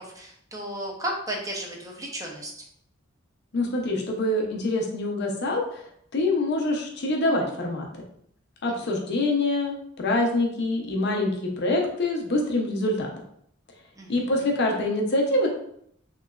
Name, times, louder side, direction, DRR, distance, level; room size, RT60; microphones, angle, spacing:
voice 1, 0.0-2.5 14.0-14.5, right 1 dB, 15° right, 0 dB, 0.6 m, -34 dB
voice 2, 3.5-5.8 6.1-7.9 8.6-13.1 14.1-15.5, left 2 dB, 55° left, 1 dB, 0.6 m, -25 dB
3.2 x 2.9 x 2.4 m, 0.70 s
head